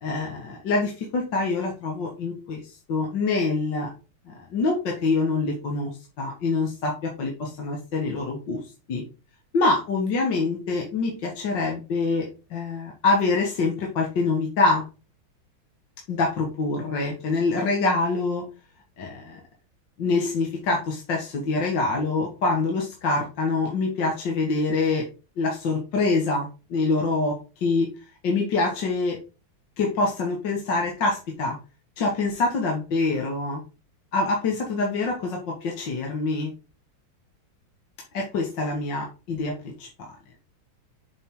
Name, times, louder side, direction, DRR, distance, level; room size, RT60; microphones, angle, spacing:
voice 1, 0.0-3.9 4.3-8.6 8.9-9.0 9.5-14.8 16.1-18.4 19.0-19.4 20.0-25.0 25.4-27.4 27.6-27.9 28.2-29.2 29.8-31.6 32.0-33.6 34.1-36.5 38.1-39.9, left 3 dB, 60° left, -1 dB, 2.2 m, -25 dB
7.5 x 5.3 x 3.8 m, 0.32 s
omnidirectional pair, 2.3 m